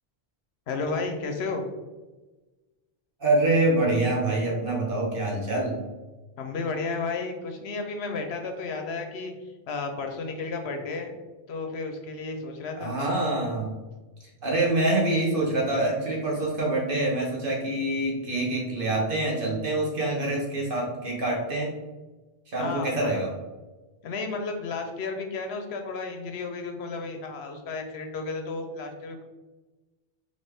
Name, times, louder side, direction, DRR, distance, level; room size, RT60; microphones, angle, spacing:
voice 1, 0.7-1.7 6.4-11.1 11.5-12.9 22.6-23.2 24.0-29.2, left 3 dB, 75° left, 5 dB, 0.9 m, -33 dB
voice 2, 3.2-5.8 12.8-13.8 14.4-21.7 22.5-23.3, right 2 dB, 55° right, -3 dB, 1.3 m, -25 dB
4.2 x 3.3 x 3.3 m, 1.2 s
omnidirectional pair, 1.1 m